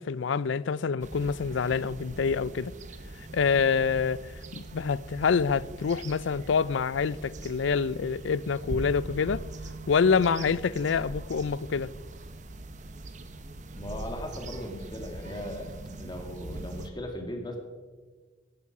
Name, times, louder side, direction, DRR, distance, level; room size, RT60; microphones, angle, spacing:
voice 1, 0.0-2.7 3.2-9.4 9.9-11.9, left 5 dB, 75° left, 0.4 m, -26 dB
sound 1, 1.0-16.9, right 2 dB, 40° right, 0.9 m, -41 dB
voice 2, 13.7-17.6, left 1 dB, 20° left, 2.1 m, -38 dB
17.5 x 11.0 x 4.9 m
head